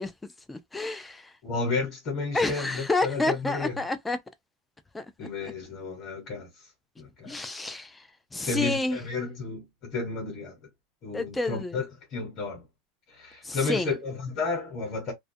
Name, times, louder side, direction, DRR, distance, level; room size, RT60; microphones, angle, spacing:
voice 1, 0.0-1.3 2.3-4.2 4.9-5.5 7.3-9.0 11.1-11.8 13.4-13.9, left 2 dB, 5° left, 0.3 m, -30 dB
voice 2, 1.4-3.7 5.2-6.5 7.0-7.4 8.3-10.6 11.0-11.8 12.1-12.6 13.1-15.1, left 4 dB, 30° left, 1.0 m, -32 dB
2.3 x 2.1 x 2.6 m
supercardioid pair, 170°, 0 cm